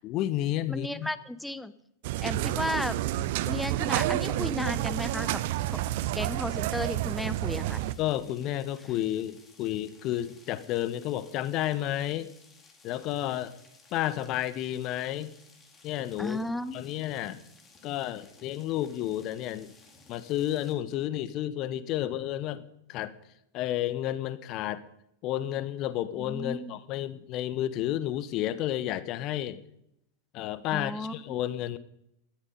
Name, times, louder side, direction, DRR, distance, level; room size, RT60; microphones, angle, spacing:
voice 1, 0.0-1.1 8.0-12.3 12.8-13.5 13.9-15.3 15.8-16.4 16.7-17.4 17.8-19.7 20.1-23.1 23.5-24.8 25.2-29.6 30.3-31.8, left 13 dB, 40° left, 16 dB, 1.1 m, -31 dB
voice 2, 0.7-1.7 2.2-3.0 3.5-5.4 6.1-7.8 16.2-16.8 26.2-26.7 30.7-31.4, left 1 dB, 5° left, 15 dB, 0.9 m, -34 dB
sound 1, 2.0-7.9, right 15 dB, 50° right, 0.7 m, -29 dB
sound 2, 4.8-20.7, left 3 dB, 20° left, 3.7 m, -58 dB
18.5 x 13.5 x 5.3 m, 0.78 s
figure-of-eight pair, 90°, 0 cm